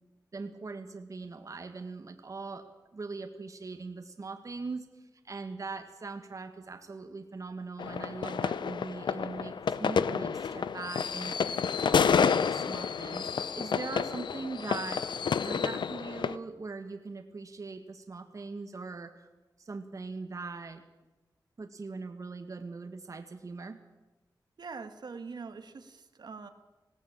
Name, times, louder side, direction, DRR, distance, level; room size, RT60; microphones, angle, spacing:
voice 1, 0.3-11.4 11.7-15.1 15.4-19.3 19.6-20.8 21.6-23.8, right 4 dB, 45° right, 6 dB, 1.5 m, -41 dB
sound 1, 7.8-16.4, left 6 dB, 90° left, 0.7 m, -29 dB
voice 2, 24.6-26.5, right 4 dB, 65° right, 7 dB, 1.7 m, -43 dB
19.5 x 16.5 x 8.7 m, 1.1 s
wide cardioid pair, 115°, 8 cm